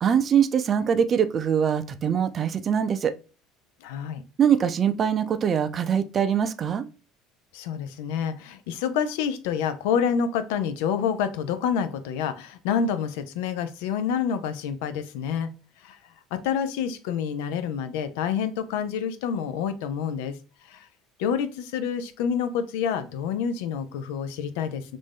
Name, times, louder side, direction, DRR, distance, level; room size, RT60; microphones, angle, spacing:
voice 1, 0.0-3.1 4.4-6.9, right 8 dB, 40° right, 0.4 m, -23 dB
voice 2, 3.8-4.2 7.5-15.5 15.8-16.0 16.3-20.4 20.7-20.9 21.2-25.0, left 7 dB, 85° left, 0.4 m, -28 dB
3.1 x 2.6 x 3.3 m
supercardioid pair, 95°, 0 cm